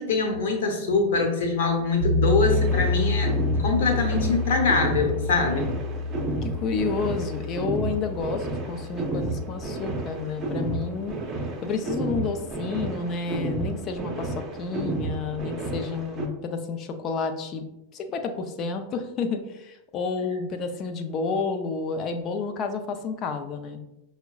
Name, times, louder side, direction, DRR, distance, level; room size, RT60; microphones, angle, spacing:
voice 1, 0.0-3.3 3.6-5.7, left 3 dB, 75° left, 3 dB, 0.9 m, -24 dB
sound 1, 2.0-10.2, left 3 dB, 75° right, 0.4 m, -28 dB
sound 2, 2.4-16.3, right 2 dB, 30° right, 0.7 m, -32 dB
voice 2, 6.4-11.2 11.6-17.6 17.9-23.8, left 4 dB, 40° left, 6 dB, 0.5 m, -30 dB
5.7 x 2.1 x 2.3 m, 0.90 s
hypercardioid pair, 110°, 0 cm